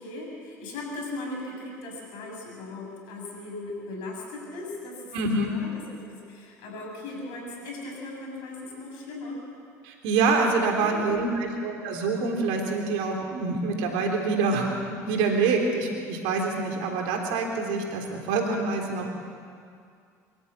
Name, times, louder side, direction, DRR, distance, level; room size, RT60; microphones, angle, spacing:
voice 1, 0.0-5.1 5.5-9.4 10.7-11.2, left 2 dB, 65° left, 0 dB, 7.0 m, -38 dB
voice 2, 5.1-5.5 9.8-19.1, right 3 dB, 70° right, 2 dB, 3.5 m, -26 dB
24.5 x 13.5 x 8.2 m, 2.3 s
hypercardioid pair, 70°, 9 cm